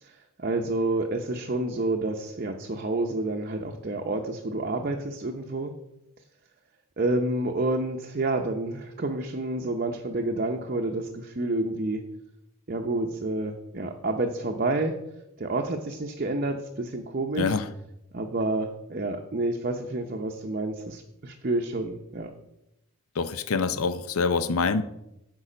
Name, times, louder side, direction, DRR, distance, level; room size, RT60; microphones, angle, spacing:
voice 1, 0.0-5.7 7.0-12.0 12.7-14.9 15.4-17.5 18.1-22.3, right 2 dB, 40° right, 3 dB, 0.7 m, -29 dB
voice 2, 17.4-17.7 23.2-24.8, left 4 dB, 80° left, 12 dB, 0.6 m, -25 dB
8.5 x 6.0 x 5.0 m, 0.85 s
head